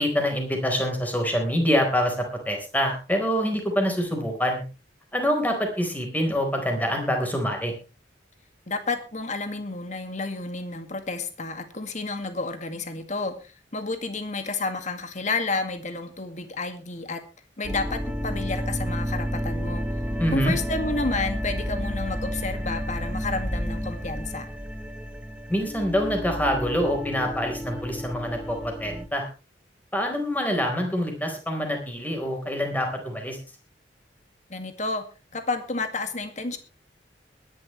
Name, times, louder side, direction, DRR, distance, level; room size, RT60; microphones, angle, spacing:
voice 1, 0.0-4.6 5.1-7.7 20.2-20.5 25.5-29.3 29.9-33.4, equal, 10° left, 3 dB, 4.2 m, -25 dB
voice 2, 8.7-17.2 17.6-19.8 20.3-24.5 34.5-35.0 35.3-36.6, left 3 dB, 40° left, 8 dB, 2.0 m, -30 dB
sound 1, 17.6-29.1, equal, 5° right, 1.2 m, -31 dB
22.0 x 11.0 x 3.2 m, 0.31 s
head